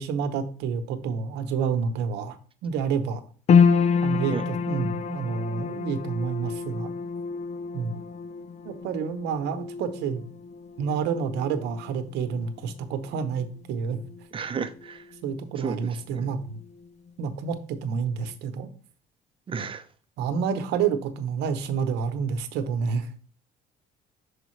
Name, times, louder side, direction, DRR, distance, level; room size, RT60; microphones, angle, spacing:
voice 1, 0.0-3.2 4.0-6.9 7.7-8.0 8.6-10.2 10.8-14.0 15.2-16.6 17.2-18.7 20.2-23.1, right 6 dB, 85° right, 10 dB, 0.8 m, -29 dB
sound 1, 3.5-15.9 16.1-17.1 17.5-17.6, left 6 dB, 40° left, 0.5 m, -28 dB
voice 2, 14.3-15.0 15.6-15.8 16.1-16.3 19.5-19.8, right 6 dB, 30° right, 9 dB, 0.6 m, -32 dB
6.3 x 4.9 x 3.1 m, 0.43 s
cardioid pair, 110°, 17 cm